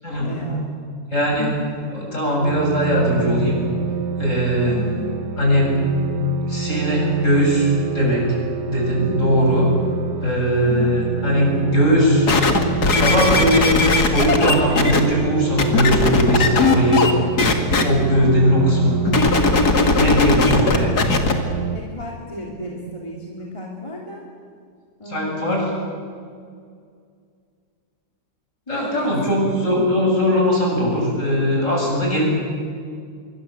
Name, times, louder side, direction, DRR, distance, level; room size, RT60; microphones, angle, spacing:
voice 1, 0.2-0.7 1.4-1.5 4.6-5.0 10.6-11.0 21.7-24.2 25.0-25.7 28.7-29.4, left 1 dB, 15° left, -2 dB, 3.1 m, -33 dB
voice 2, 1.1-1.5 1.9-3.5 4.2-4.7 5.4-5.7 6.5-8.2 8.7-9.7 10.2-12.3 13.0-17.0 17.8-19.0 20.0-20.9 25.1-25.6 28.7-32.2, equal, 45° left, -2 dB, 8.5 m, -19 dB
sound 1, 2.4-21.8, right 6 dB, 85° right, 1.6 m, -27 dB
sound 2, 12.3-15.0 15.6-17.1 17.4-17.8 19.1-21.3 22.0-22.1, left 4 dB, 65° left, 2.7 m, -18 dB
26.0 x 23.5 x 8.0 m, 2.2 s
omnidirectional pair, 1.8 m